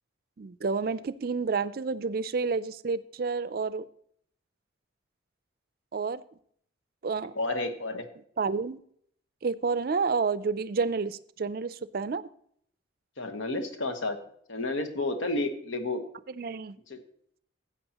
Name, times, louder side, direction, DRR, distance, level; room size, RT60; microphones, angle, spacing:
voice 1, 0.4-3.9 5.9-6.2 7.0-7.3 8.4-8.8 9.4-12.3 16.3-16.8, right 4 dB, 50° right, 15 dB, 0.4 m, -30 dB
voice 2, 7.4-8.0 13.2-14.2 14.5-16.0 16.9-17.0, left 2 dB, 80° left, 7 dB, 1.2 m, -31 dB
13.5 x 8.4 x 2.9 m, 0.64 s
head